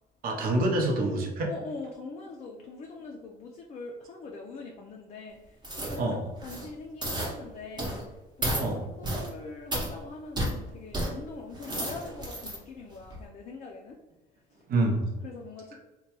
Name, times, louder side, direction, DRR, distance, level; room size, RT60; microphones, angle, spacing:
voice 1, 0.2-1.5 6.0-6.2 8.6-8.8 14.7-15.1, right 2 dB, 60° right, 1 dB, 0.7 m, -26 dB
voice 2, 1.5-14.0 14.5-14.6 15.2-15.8, left 3 dB, 40° left, 1 dB, 0.4 m, -43 dB
sound 1, 5.6-6.0 6.4-6.7 7.0-7.3 7.8-8.0 8.4-8.7 9.0-9.3 9.7-9.9 10.4-10.5 10.9-11.1 11.5-12.6 13.0-13.2, right 1 dB, 25° right, 0.8 m, -31 dB
2.9 x 2.2 x 2.9 m, 1.1 s
cardioid pair, 110°, 17 cm